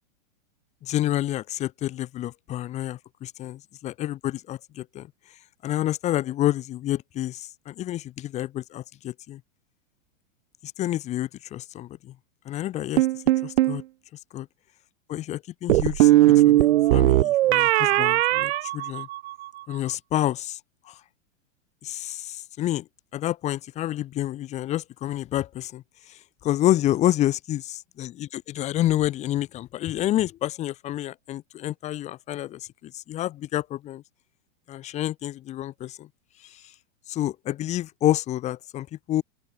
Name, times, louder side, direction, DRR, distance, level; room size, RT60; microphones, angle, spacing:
voice 1, 0.8-5.1 5.6-9.4 10.6-12.1 12.4-13.1 13.4-13.8 14.3-14.5 15.1-16.1 16.4-19.1 19.7-20.6 20.9-21.0 21.8-22.9 23.1-34.0 34.7-36.1 36.4-36.6 37.1-39.2, left 13 dB, 15° left, 1.4 m, -29 dB
sound 1, 13.0-13.8 15.7-19.5, right 15 dB, 55° right, 0.7 m, -19 dB
open air
supercardioid pair, 170°, 40 cm